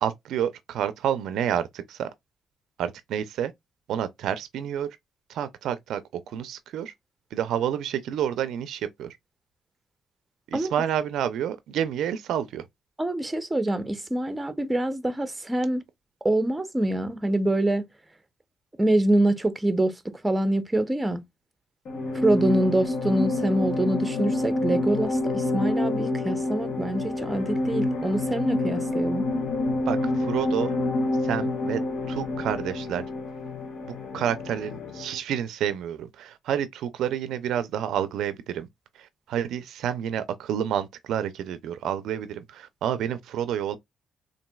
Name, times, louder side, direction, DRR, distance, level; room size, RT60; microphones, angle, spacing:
voice 1, 0.0-2.1 2.8-3.5 3.9-4.9 5.3-6.9 7.3-9.2 10.5-12.6 29.9-30.7 31.2-31.8 32.1-33.0 34.1-38.7 39.0-43.8, right 9 dB, 80° right, 0.4 m, -29 dB
voice 2, 13.0-15.8 16.2-17.8 18.8-21.2 22.1-29.2, right 1 dB, 15° right, 0.6 m, -25 dB
sound 1, 21.9-35.2, left 2 dB, 65° left, 0.9 m, -28 dB
3.9 x 2.6 x 2.2 m
cardioid pair, 90°, 0 cm